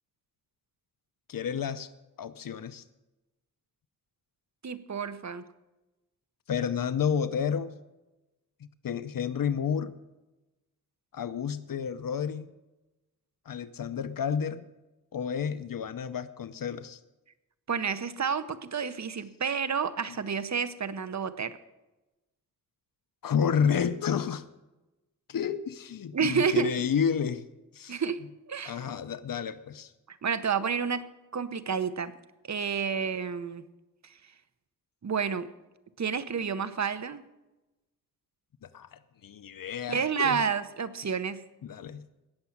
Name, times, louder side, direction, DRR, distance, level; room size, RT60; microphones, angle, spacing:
voice 1, 1.3-1.9 2.2-2.8 6.5-7.7 8.8-9.9 11.1-12.5 13.5-14.6 15.1-17.0 20.1-20.2 23.2-24.4 25.3-27.4 27.7-28.0 28.6-29.9 38.6-40.4 41.6-42.0, left 7 dB, 85° left, 14 dB, 0.6 m, -30 dB
voice 2, 4.6-5.4 17.7-21.5 26.1-26.9 27.9-28.2 28.5-28.8 30.1-32.1 32.4-33.6 34.0-34.1 35.0-35.5 36.0-37.2 39.9-41.4, right 6 dB, 55° right, 12 dB, 0.8 m, -30 dB
17.5 x 7.0 x 7.2 m, 1.0 s
wide cardioid pair, 85°, 33 cm